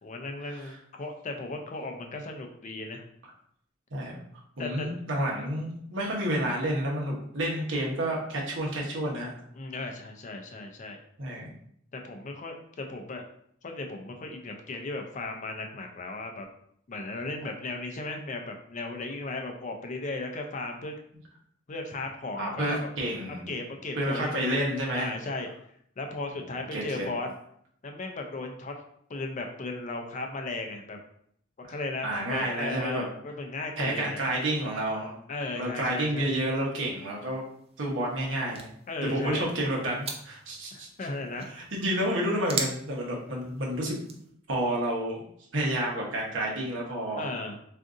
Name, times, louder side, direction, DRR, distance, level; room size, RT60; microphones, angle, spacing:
voice 1, 0.0-3.0 4.6-4.9 9.5-11.0 11.9-13.2 13.6-16.5 16.9-21.0 21.7-23.0 23.5-24.6 24.9-25.5 26.0-27.3 27.8-28.8 29.1-31.0 31.6-34.2 35.3-36.3 38.9-39.5 40.7-41.7 47.2-47.6, left 2 dB, 40° left, 3 dB, 0.4 m, -36 dB
voice 2, 4.6-9.3 11.2-11.5 22.4-23.5 24.0-25.1 26.4-27.1 32.0-33.0 33.8-35.2 35.5-37.4 37.8-38.7 39.0-40.9 41.5-44.0 44.5-45.2 45.5-47.3, right 1 dB, 75° right, -2 dB, 0.9 m, -30 dB
sound 1, 36.5-44.3, right 4 dB, 30° right, 0.4 m, -41 dB
2.6 x 2.5 x 3.6 m, 0.67 s
head